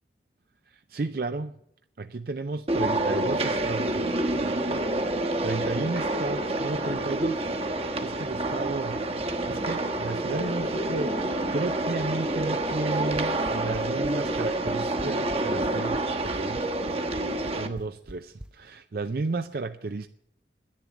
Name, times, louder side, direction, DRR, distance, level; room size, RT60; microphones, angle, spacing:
voice 1, 0.7-1.5 2.0-4.8 5.4-11.2 11.5-16.6 17.5-20.1, right 3 dB, 55° right, 0.5 m, -33 dB
sound 1, 2.7-17.7, right 2 dB, 35° right, 1.2 m, -28 dB
sound 2, 13.0-18.5, equal, 5° right, 0.5 m, -42 dB
11.0 x 10.5 x 8.1 m
head